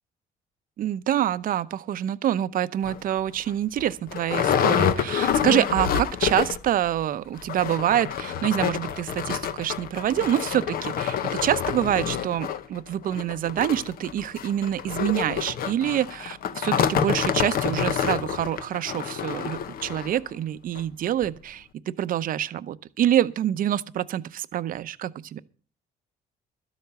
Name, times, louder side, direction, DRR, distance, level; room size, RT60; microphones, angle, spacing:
voice 1, 0.8-25.4, right 11 dB, 55° right, 0.7 m, -26 dB
sound 1, 2.8-3.0 3.5-3.6 3.8-6.7 7.0-7.1 7.4-20.2 20.8-20.9 21.2-21.3, left 8 dB, 60° left, 1.0 m, -27 dB
12.5 x 8.1 x 6.9 m
cardioid pair, 110°, 17 cm